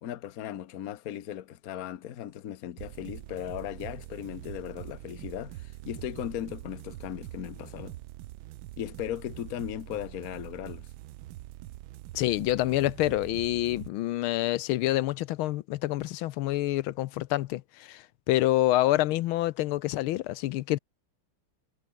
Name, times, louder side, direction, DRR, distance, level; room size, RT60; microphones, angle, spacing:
voice 1, 0.0-8.0 8.8-10.9, left 11 dB, 55° left, 1.2 m, -37 dB
sound 1, 2.8-13.9, right 15 dB, 75° right, 1.4 m, -44 dB
voice 2, 12.1-20.8, left 16 dB, 80° left, 1.5 m, -27 dB
omnidirectional pair, 2.3 m